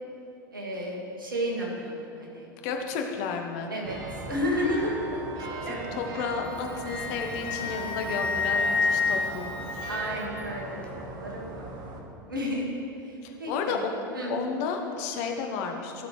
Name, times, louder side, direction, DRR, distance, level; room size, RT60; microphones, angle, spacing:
voice 1, 0.5-2.5 3.7-4.0 4.2-5.1 5.6-5.9 9.9-11.7 12.3-12.8 13.1-13.8 14.1-14.3, equal, 80° right, -2 dB, 2.0 m, -32 dB
voice 2, 2.6-3.7 5.6-9.9 13.2-13.9 14.3-16.1, left 5 dB, 50° left, 3 dB, 1.1 m, -32 dB
sound 1, 3.8-12.0, right 3 dB, 40° right, 1.3 m, -38 dB
Wind instrument woodwind instrument, 6.4-10.4, left 4 dB, 10° left, 1.1 m, -29 dB
15.0 x 6.5 x 3.3 m, 2.6 s
figure-of-eight pair, 85°, 11 cm